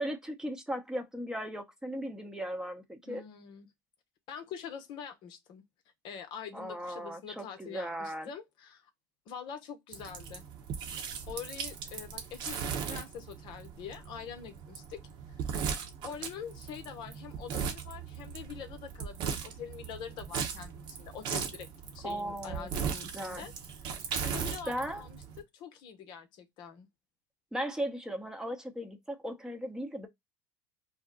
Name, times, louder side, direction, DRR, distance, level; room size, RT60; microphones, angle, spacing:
voice 1, 0.0-3.2 6.5-8.3 22.0-22.9 23.1-23.4 24.7-25.0 27.5-30.1, equal, 5° right, 0.7 m, -37 dB
voice 2, 3.1-3.7 4.3-5.6 6.0-8.9 9.3-10.4 11.3-15.0 15.5-15.6 16.0-21.7 21.9-23.5 23.8-24.0 24.2-25.2 25.5-26.9, left 7 dB, 55° left, 0.7 m, -45 dB
sound 1, 9.9-25.4, right 7 dB, 55° right, 0.9 m, -38 dB
2.6 x 2.1 x 3.7 m
hypercardioid pair, 80°, 9 cm